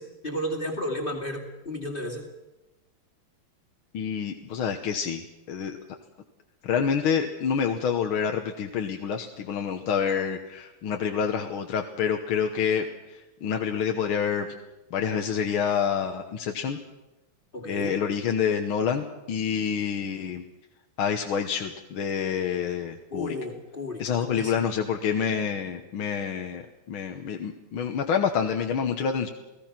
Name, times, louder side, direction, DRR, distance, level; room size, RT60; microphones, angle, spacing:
voice 1, 0.0-2.3 17.5-17.9 23.1-24.5, equal, 25° left, 0 dB, 2.5 m, -33 dB
voice 2, 3.9-5.2 5.5-5.8 6.6-14.5 14.9-16.8 17.6-20.4 21.0-23.4 24.0-29.3, left 7 dB, 70° left, 4 dB, 1.9 m, -27 dB
29.5 x 18.0 x 6.0 m, 1.0 s
omnidirectional pair, 2.4 m